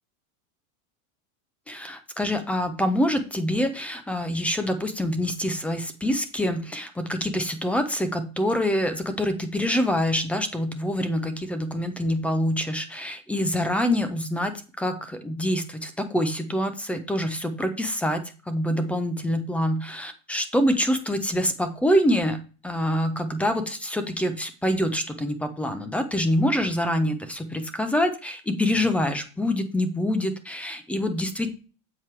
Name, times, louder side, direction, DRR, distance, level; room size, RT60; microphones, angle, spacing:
voice 1, 1.7-31.5, equal, 5° left, 8 dB, 0.5 m, -26 dB
7.7 x 4.3 x 4.6 m, 0.35 s
supercardioid pair, 150°, 42 cm